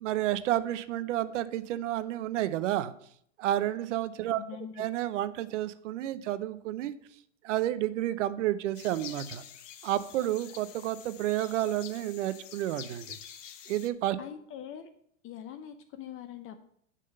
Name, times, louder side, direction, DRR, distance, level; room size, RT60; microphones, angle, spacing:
voice 1, 0.0-2.9 3.4-4.4 4.8-6.9 7.4-9.4 9.8-13.2 13.7-14.2, right 13 dB, 75° right, 13 dB, 0.8 m, -30 dB
voice 2, 4.3-4.8 14.2-14.9 15.2-16.7, left 9 dB, 35° left, 8 dB, 0.7 m, -43 dB
sound 1, 8.7-13.9, left 9 dB, 75° left, 1.1 m, -47 dB
10.0 x 3.7 x 6.7 m, 0.68 s
hypercardioid pair, 105°, 37 cm